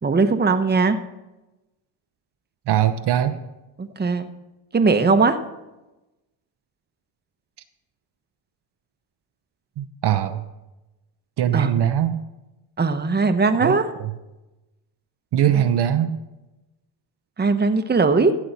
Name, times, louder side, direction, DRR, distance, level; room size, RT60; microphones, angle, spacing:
voice 1, 0.0-1.0 3.8-4.3 4.7-5.4 11.5-11.7 12.8-13.9 17.4-18.3, right 4 dB, 20° right, 9 dB, 1.0 m, -19 dB
voice 2, 2.7-3.4 9.8-10.5 11.4-12.2 13.6-13.8 14.0-14.1 15.3-16.2, right 10 dB, 55° right, 10 dB, 0.8 m, -21 dB
15.5 x 7.7 x 4.2 m, 1.0 s
supercardioid pair, 65°, 47 cm